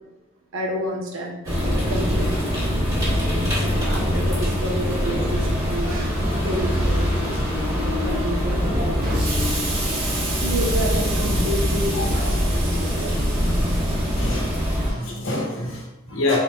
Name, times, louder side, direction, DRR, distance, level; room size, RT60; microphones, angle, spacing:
voice 1, 0.5-2.6 3.1-3.3 3.5-6.2 6.4-7.2 7.7-9.2 10.4-13.3, equal, 75° right, 0 dB, 0.8 m, -30 dB
sound 1, 1.4-14.9, equal, 15° right, 1.1 m, -23 dB
sound 2, 1.5-13.9 14.2-14.4, left 1 dB, 40° left, 0.6 m, -34 dB
Explosion, 9.0-14.8, right 2 dB, 55° right, 1.1 m, -32 dB
voice 2, 11.9-12.3 14.2-14.6 14.9-16.4, left 2 dB, 85° left, -2 dB, 1.0 m, -27 dB
4.0 x 3.6 x 2.3 m, 1.0 s
head